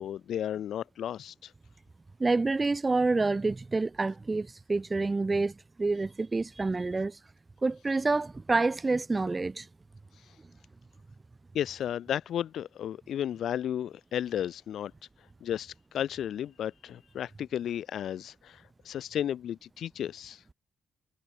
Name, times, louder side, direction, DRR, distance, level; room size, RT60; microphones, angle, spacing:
voice 1, 0.0-1.5 10.2-10.3 11.5-14.9 15.4-20.4, left 10 dB, 70° left, 1.6 m, -34 dB
voice 2, 2.2-7.2 7.6-9.7, right 3 dB, 25° right, 2.7 m, -28 dB
cardioid pair, 90°, 0 cm